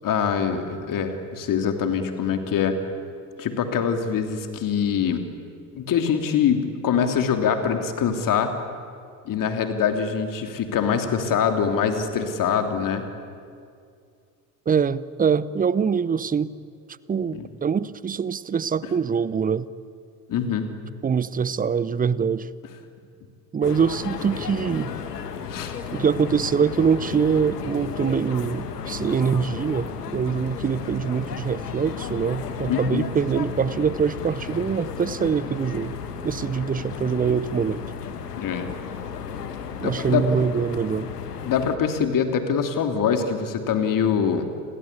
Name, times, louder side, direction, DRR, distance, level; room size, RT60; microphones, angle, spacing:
voice 1, 0.0-2.7 3.4-5.2 5.7-8.5 9.2-13.0 17.3-17.5 20.3-20.7 25.5-25.7 32.7-33.1 38.4-38.7 39.7-40.3 41.4-44.5, left 7 dB, 40° left, 3.1 m, -24 dB
voice 2, 14.7-16.5 17.1-19.7 21.0-22.5 23.5-24.9 25.9-36.0 36.2-37.8 39.8-41.1, right 6 dB, 20° right, 0.8 m, -24 dB
sound 1, 23.6-41.8, left 6 dB, 75° left, 1.9 m, -34 dB
30.0 x 21.5 x 8.5 m
figure-of-eight pair, 60°, 48 cm